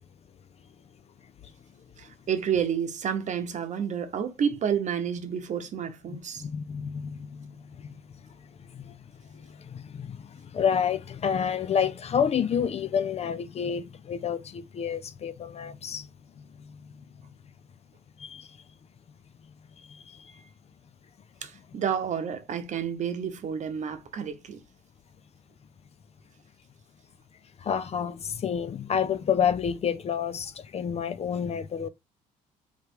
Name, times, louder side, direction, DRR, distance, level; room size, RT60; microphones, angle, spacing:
voice 1, 2.0-6.4 21.4-24.6, right 8 dB, 50° right, 0.9 m, -30 dB
voice 2, 6.1-7.5 9.7-10.2 10.5-16.0 18.2-18.4 27.7-31.9, left 7 dB, 40° left, 0.5 m, -28 dB
3.5 x 3.2 x 4.6 m
supercardioid pair, 70°, 16 cm